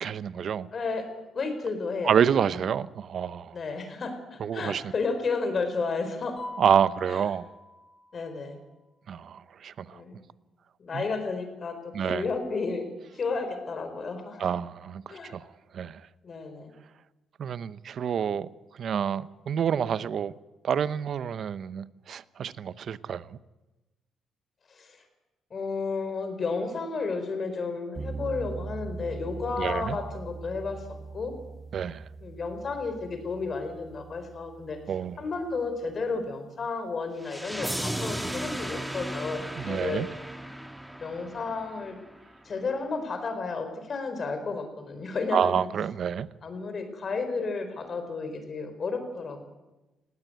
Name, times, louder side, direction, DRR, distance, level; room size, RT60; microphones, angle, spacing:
voice 1, 0.0-0.7 2.0-3.6 4.4-4.8 6.6-7.5 9.1-10.0 10.9-11.0 11.9-12.2 14.4-15.5 15.7-16.0 17.4-18.5 18.8-20.3 20.6-23.4 29.6-30.0 31.7-32.0 34.9-35.2 39.6-40.1 45.3-46.3, right 8 dB, 60° right, 0.8 m, -28 dB
voice 2, 0.7-1.0 1.3-2.1 3.5-6.4 7.1-7.2 8.1-8.6 9.9-10.2 10.8-12.9 13.1-14.4 15.1-15.3 16.2-16.7 24.7-25.0 25.5-30.9 31.1-31.3 32.2-34.8 35.2-40.0 41.0-41.9 42.4-45.6 46.4-49.4, left 4 dB, 45° left, 4.5 m, -32 dB
Mallet percussion, 6.4-8.4, left 2 dB, 25° left, 4.7 m, -44 dB
sound 1, 28.0-36.1, right 4 dB, 25° right, 0.7 m, -41 dB
sound 2, 37.2-42.2, right 1 dB, 5° right, 1.9 m, -35 dB
19.5 x 17.0 x 9.2 m
cardioid pair, 90°, 0 cm